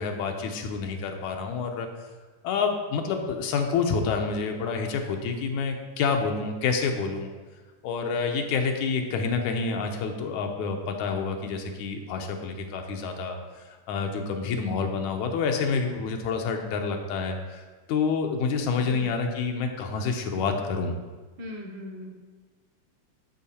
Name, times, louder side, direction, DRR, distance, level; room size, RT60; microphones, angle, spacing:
voice 1, 0.0-1.9 2.4-7.3 7.8-17.6 17.9-20.9, left 5 dB, 75° left, 3 dB, 2.2 m, -28 dB
voice 2, 21.4-22.2, left 1 dB, 55° right, -1 dB, 1.4 m, -39 dB
12.5 x 5.6 x 4.3 m, 1.4 s
omnidirectional pair, 3.5 m